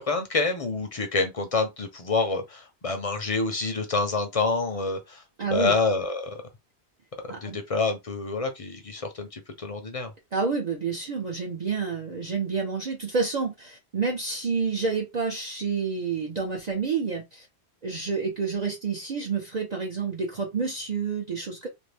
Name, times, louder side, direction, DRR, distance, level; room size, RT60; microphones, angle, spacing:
voice 1, 0.0-5.2 5.5-6.4 7.2-10.1, left 3 dB, 40° left, 0.6 m, -27 dB
voice 2, 5.4-5.7 7.3-7.6 10.3-17.5 17.8-21.7, right 5 dB, 45° right, 0.7 m, -29 dB
2.6 x 2.6 x 3.3 m
omnidirectional pair, 1.1 m